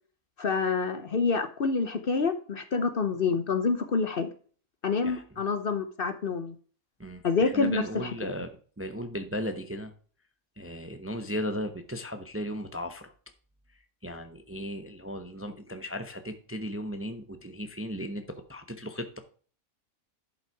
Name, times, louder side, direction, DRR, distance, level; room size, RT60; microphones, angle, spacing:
voice 1, 0.4-4.3 4.8-6.5 7.2-8.3, left 4 dB, 50° left, 9 dB, 0.9 m, -27 dB
voice 2, 7.0-9.9 10.6-13.1 14.0-19.2, equal, 15° right, 8 dB, 0.6 m, -36 dB
11.0 x 5.6 x 4.6 m, 0.42 s
omnidirectional pair, 1.4 m